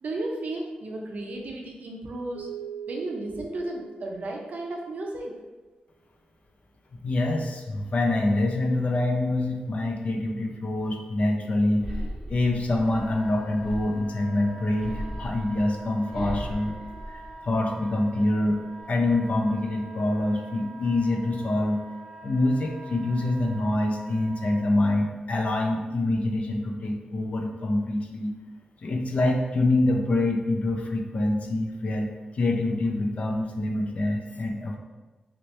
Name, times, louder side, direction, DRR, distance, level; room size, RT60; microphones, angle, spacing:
voice 1, 0.0-2.5 2.9-5.4, right 2 dB, 60° right, 0 dB, 0.6 m, -34 dB
sound 1, 2.3-4.9, right 9 dB, 90° right, 0.9 m, -41 dB
voice 2, 6.9-11.9 12.3-16.8 17.1-18.6 18.9-21.8 22.2-28.3 28.8-34.8, left 2 dB, 50° left, 1 dB, 0.4 m, -25 dB
sound 2, 11.8-14.2 14.8-17.8 18.3-18.8, equal, 20° right, 0.6 m, -37 dB
Wind instrument woodwind instrument, 12.8-24.6, right 2 dB, 15° left, 1.4 m, -45 dB
3.1 x 2.9 x 3.2 m, 1.2 s
wide cardioid pair, 150°, 3 cm